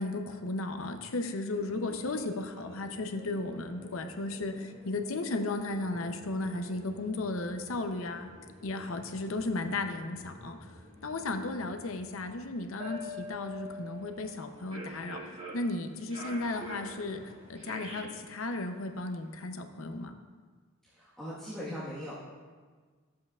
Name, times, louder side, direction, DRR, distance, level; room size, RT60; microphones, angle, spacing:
voice 1, 0.0-8.3 8.6-10.6 11.0-15.2 15.5-20.2, left 2 dB, 75° left, 6 dB, 0.7 m, -35 dB
sound 1, 1.5-19.3, equal, 30° right, 2.2 m, -47 dB
voice 2, 20.8-22.1, equal, ahead, -11 dB, 1.3 m, -40 dB
13.0 x 7.6 x 2.4 m, 1.5 s
head